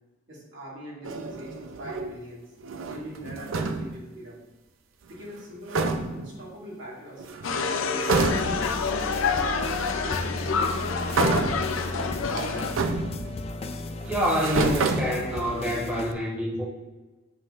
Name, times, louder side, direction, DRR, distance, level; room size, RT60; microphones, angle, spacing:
voice 1, 0.3-2.4 2.8-4.4 5.1-5.8 6.1-7.4 7.9-8.7 9.2-11.5, right 1 dB, 65° right, -5 dB, 2.2 m, -42 dB
sound 1, 1.0-2.2 2.6-4.0 5.4-5.5 5.7-6.4 7.2-7.7 8.0-8.8 9.7-9.8 11.1-11.8 12.2-13.6 14.0-15.6, right 3 dB, 85° right, 0.6 m, -28 dB
sound 2, 7.4-12.7, left 5 dB, 85° left, 0.5 m, -28 dB
sound 3, 8.1-16.1, left 2 dB, 30° left, 0.4 m, -35 dB
voice 2, 14.0-16.6, equal, 5° right, -5 dB, 1.1 m, -27 dB
7.7 x 5.7 x 2.5 m, 1.2 s
head